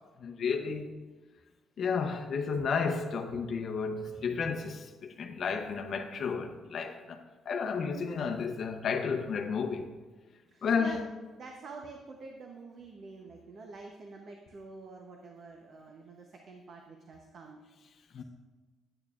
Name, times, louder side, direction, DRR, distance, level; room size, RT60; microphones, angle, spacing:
voice 1, 0.2-0.9 1.8-9.9 10.6-11.0 18.1-18.2, left 5 dB, 45° left, 0.7 m, -32 dB
voice 2, 10.5-11.0 11.4-17.6, right 4 dB, 45° right, 0.7 m, -47 dB
9.7 x 8.9 x 2.4 m
cardioid pair, 165°, 0 cm